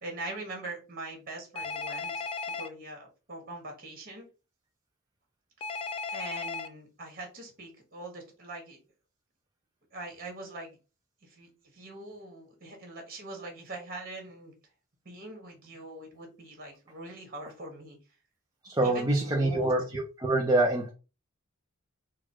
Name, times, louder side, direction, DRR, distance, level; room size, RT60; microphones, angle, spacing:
voice 1, 0.0-4.3 6.1-8.8 9.9-10.8 11.2-14.5 15.1-18.0 18.8-19.7, right 2 dB, 45° right, 1.8 m, -42 dB
Telephone, 1.5-2.7 5.6-6.7, left 4 dB, 25° left, 0.4 m, -35 dB
voice 2, 18.6-20.9, right 2 dB, 20° right, 0.7 m, -26 dB
4.2 x 2.4 x 4.5 m
head